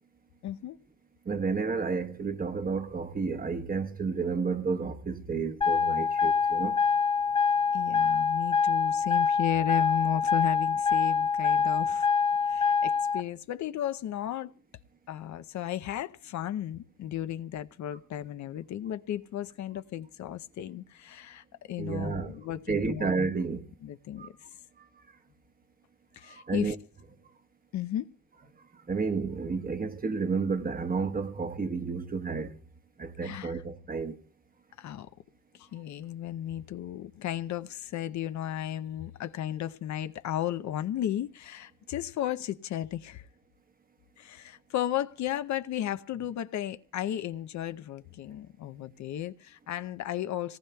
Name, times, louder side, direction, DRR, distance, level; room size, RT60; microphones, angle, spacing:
voice 1, 0.4-0.8 7.7-12.1 12.5-14.5 15.1-23.1 23.8-24.3 26.1-26.8 27.7-28.1 33.2-33.6 34.8-35.1 35.5-43.3 44.2-50.6, left 11 dB, 70° left, 0.7 m, -34 dB
voice 2, 1.3-6.8 21.8-22.3 22.7-23.7 24.2-24.3 26.3-26.7 28.9-32.6 33.0-34.2, right 4 dB, 30° right, 1.1 m, -31 dB
sound 1, 5.6-13.2, left 6 dB, 15° left, 0.9 m, -25 dB
26.0 x 18.5 x 2.3 m
cardioid pair, 90°, 30 cm